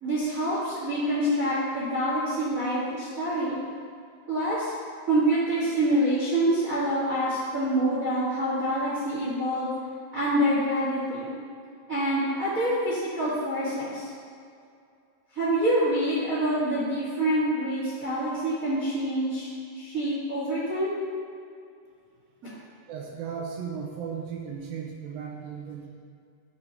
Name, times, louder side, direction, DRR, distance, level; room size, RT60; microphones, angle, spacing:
voice 1, 0.0-3.6 4.3-4.7 5.1-9.7 10.1-11.3 11.9-14.1 15.3-19.5 19.7-20.9 22.4-22.6, right 1 dB, 60° right, -10 dB, 0.8 m, -26 dB
voice 2, 22.9-25.9, right 6 dB, 75° right, 0 dB, 2.4 m, -36 dB
13.0 x 5.8 x 2.9 m, 2.3 s
omnidirectional pair, 4.5 m